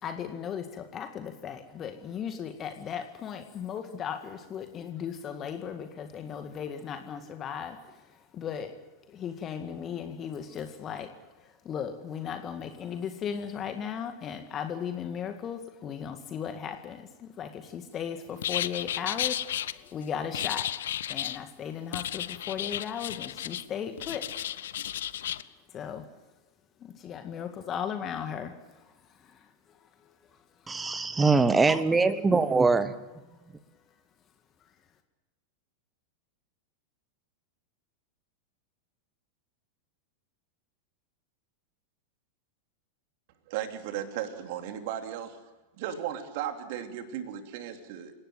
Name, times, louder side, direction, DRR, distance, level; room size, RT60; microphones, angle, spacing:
voice 1, 0.0-8.8 9.1-11.1 11.4-24.6 25.7-26.1 26.8-28.9 29.2-29.5 29.8-30.1, left 8 dB, 30° left, 7 dB, 2.0 m, -37 dB
sound 1, 18.4-19.7 20.3-21.4 21.9-23.6 24.0-25.4, left 11 dB, 60° left, 0.8 m, -33 dB
voice 2, 30.7-32.9, right 4 dB, 10° right, 13 dB, 1.5 m, -23 dB
voice 3, 43.5-45.4 45.8-48.1, right 10 dB, 50° right, 6 dB, 3.1 m, -35 dB
28.5 x 17.5 x 7.9 m, 1.1 s
figure-of-eight pair, 90°, 0 cm